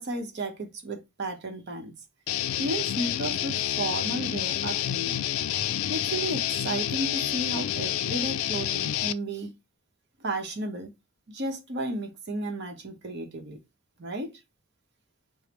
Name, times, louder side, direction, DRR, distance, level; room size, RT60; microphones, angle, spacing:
voice 1, 0.0-1.9 2.6-5.2 5.9-9.5 10.2-10.9 11.3-13.6 14.0-14.3, right 2 dB, 55° right, 0.8 m, -33 dB
Guitar, 2.3-9.1, left 11 dB, 80° left, 0.3 m, -29 dB
5.0 x 2.0 x 2.9 m
head